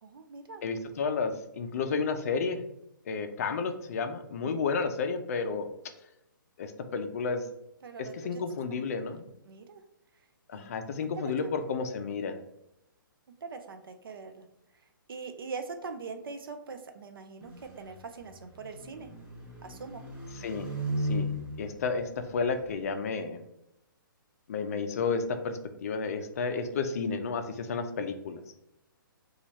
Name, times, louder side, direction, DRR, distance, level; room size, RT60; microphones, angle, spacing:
voice 1, 0.0-0.6 3.4-3.5 7.8-8.4 9.5-9.8 10.5-10.8 11.0-11.5 13.4-14.5 15.1-19.1 19.6-20.0, right 4 dB, 80° right, 6 dB, 0.5 m, -42 dB
voice 2, 0.6-2.6 3.1-5.7 6.6-7.5 8.0-9.3 10.5-12.4 20.3-20.7 21.0-21.3 21.6-23.4 24.5-28.4, left 5 dB, 45° left, 7 dB, 0.4 m, -32 dB
sound 1, 17.4-22.9, equal, 10° right, 0.5 m, -37 dB
2.9 x 2.3 x 4.2 m, 0.81 s
hypercardioid pair, 165°, 12 cm